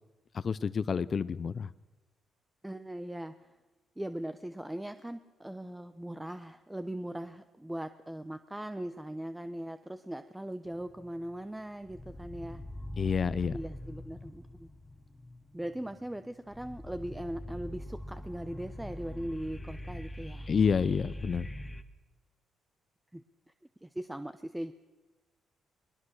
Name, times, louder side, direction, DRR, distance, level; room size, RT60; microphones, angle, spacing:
voice 1, 0.3-1.7 13.0-13.6 20.5-21.5, left 6 dB, 45° left, 16 dB, 0.6 m, -29 dB
voice 2, 2.6-3.5 4.0-12.6 13.5-14.7 15.5-20.5 23.1-23.2 23.8-24.7, right 1 dB, 10° right, 10 dB, 0.8 m, -40 dB
sound 1, 10.7-11.4 11.8-21.8, left 1 dB, 15° left, 1.4 m, -43 dB
21.5 x 21.0 x 6.5 m, 1.2 s
cardioid pair, 90°, 0 cm